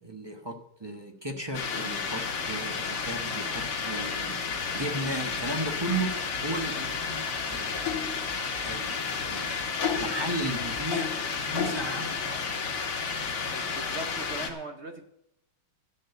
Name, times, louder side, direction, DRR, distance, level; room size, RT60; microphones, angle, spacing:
voice 1, 0.0-4.4 4.7-6.1 6.4-7.8 8.6-12.6, right 1 dB, 20° right, 3 dB, 0.8 m, -35 dB
sound 1, 1.5-14.5, left 5 dB, 85° left, 2.6 m, -31 dB
sound 2, 4.4-10.9, right 1 dB, 20° left, 1.6 m, -50 dB
voice 2, 13.4-15.0, right 2 dB, 50° right, 5 dB, 0.8 m, -40 dB
13.5 x 6.6 x 7.9 m, 0.79 s
omnidirectional pair, 2.4 m